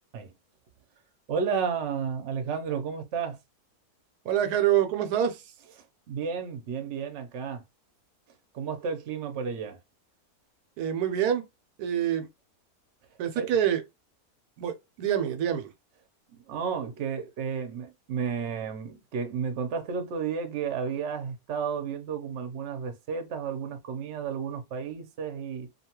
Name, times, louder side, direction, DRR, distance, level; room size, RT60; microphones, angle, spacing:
voice 1, 1.3-3.4 6.1-7.6 8.5-9.8 13.4-13.5 16.3-25.7, right 6 dB, 60° right, 0.8 m, -32 dB
voice 2, 4.2-5.4 10.8-11.4 11.8-12.3 13.2-13.8 14.6-15.7, right 10 dB, 85° right, 1.1 m, -26 dB
2.8 x 2.3 x 2.8 m
omnidirectional pair, 1.6 m